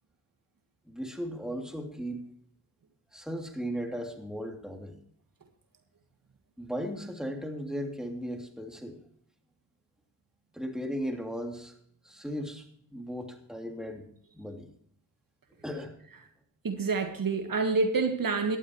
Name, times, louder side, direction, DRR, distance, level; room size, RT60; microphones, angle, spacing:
voice 1, 0.9-2.3 3.1-5.0 6.6-9.0 10.5-11.7 12.0-12.7 12.9-14.1 14.3-14.7 15.6-15.9, equal, ahead, 3.0 m, -36 dB
voice 2, 16.6-18.6, right 4 dB, 50° right, 1.8 m, -27 dB
17.5 x 12.5 x 3.2 m
cardioid pair, 65°, 42 cm